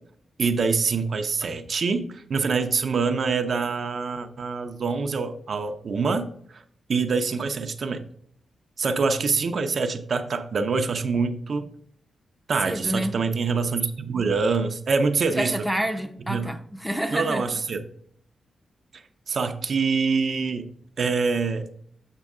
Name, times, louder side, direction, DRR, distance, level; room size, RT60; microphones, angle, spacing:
voice 1, 0.4-6.6 6.9-8.0 8.8-11.7 12.5-15.6 16.3-16.5 17.1-17.8 18.9-20.7 21.0-21.7, right 4 dB, 50° right, 0.6 m, -25 dB
voice 2, 12.6-13.1 15.3-17.4, equal, ahead, 0.6 m, -28 dB
7.4 x 6.1 x 3.6 m
wide cardioid pair, 155°, 0 cm